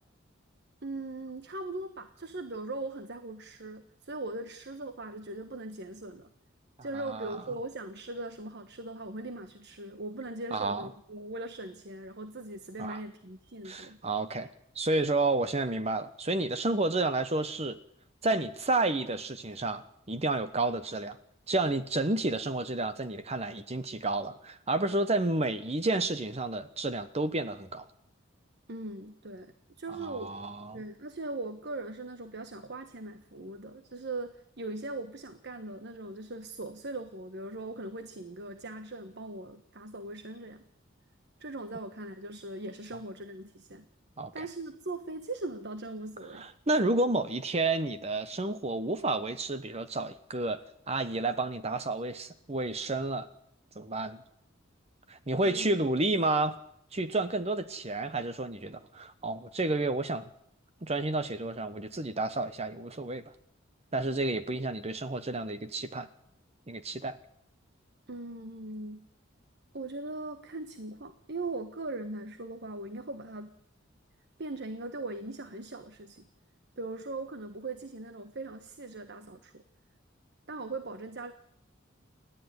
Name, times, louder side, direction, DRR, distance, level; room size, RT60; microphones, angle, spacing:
voice 1, 0.8-6.3 6.8-14.0 28.7-30.4 30.7-40.7 41.4-43.9 44.3-46.5 55.4-55.7 68.1-69.1 69.7-73.6 74.4-76.3 76.8-79.6 80.5-81.4, right 2 dB, 55° right, 9 dB, 1.4 m, -40 dB
voice 2, 6.9-7.4 10.5-10.9 12.8-13.0 13.6-14.5 14.7-17.8 18.2-21.2 21.5-27.8 29.9-30.8 44.2-44.5 46.3-50.6 50.9-53.3 53.7-54.2 55.1-56.6 56.9-60.3 60.8-63.2 63.9-66.1 66.7-67.2, right 2 dB, 30° right, 11 dB, 1.1 m, -30 dB
29.5 x 12.5 x 9.7 m, 0.73 s
head